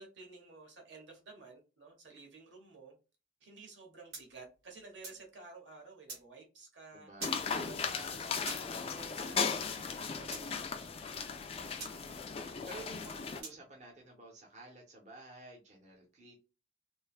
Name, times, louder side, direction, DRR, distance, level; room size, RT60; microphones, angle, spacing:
voice 1, 0.0-2.9 3.4-7.1 7.6-10.9, right 3 dB, 75° right, 1 dB, 1.1 m, -53 dB
sound 1, 4.1-5.3 6.1-6.2 7.2-7.4 8.5-8.6 10.3-10.5 11.8-12.0 13.4-13.6, right 3 dB, 55° right, 1.5 m, -44 dB
voice 2, 6.9-7.7 11.9-16.4, right 2 dB, 40° right, -1 dB, 0.6 m, -52 dB
sound 2, 7.2-13.4, left 5 dB, 30° left, 0.3 m, -37 dB
3.2 x 2.1 x 2.4 m, 0.32 s
head